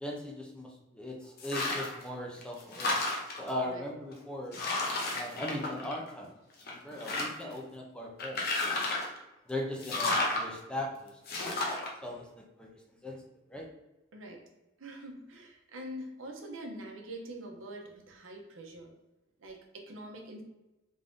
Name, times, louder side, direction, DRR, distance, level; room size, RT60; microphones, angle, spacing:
voice 1, 0.0-0.7 0.9-3.0 3.4-4.6 5.1-6.3 6.7-8.7 9.5-11.7 12.0-12.7 13.0-13.2 13.5-13.7, left 1 dB, 5° left, -1 dB, 0.5 m, -39 dB
sound 1, 1.4-2.0 2.4-3.5 4.1-4.2 4.5-6.3 6.6-7.5 8.2-9.2 9.8-10.4 11.3-11.9, left 2 dB, 50° left, 0.7 m, -32 dB
voice 2, 14.1-14.4 14.8-18.9 19.4-20.4, right 1 dB, 80° right, 2 dB, 0.8 m, -44 dB
3.5 x 2.6 x 3.5 m, 0.99 s
head